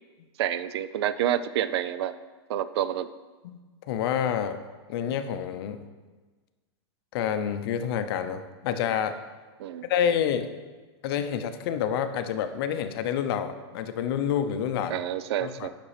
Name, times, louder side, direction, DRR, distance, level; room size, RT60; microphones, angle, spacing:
voice 1, 0.4-2.2 2.5-3.1 9.6-9.9 14.9-15.7, right 11 dB, 65° right, 14 dB, 0.4 m, -28 dB
voice 2, 3.9-4.6 4.9-5.8 7.1-9.2 9.8-10.5 11.0-15.0 15.4-15.7, left 8 dB, 60° left, 9 dB, 0.6 m, -28 dB
8.5 x 6.0 x 3.2 m, 1.3 s
hypercardioid pair, 135°, 14 cm